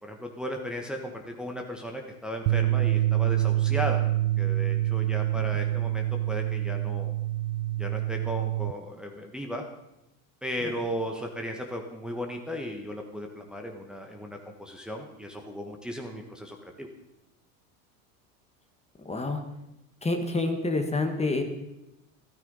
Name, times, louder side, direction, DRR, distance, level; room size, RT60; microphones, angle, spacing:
voice 1, 0.0-4.0 4.4-7.1 7.8-9.6 10.4-16.9, equal, ahead, 2 dB, 1.4 m, -36 dB
sound 1, 2.5-8.7, right 14 dB, 70° right, 0.6 m, -26 dB
voice 2, 19.0-19.4 20.0-21.4, left 2 dB, 15° left, 5 dB, 1.5 m, -27 dB
13.5 x 13.0 x 4.1 m, 0.90 s
supercardioid pair, 100°, 43 cm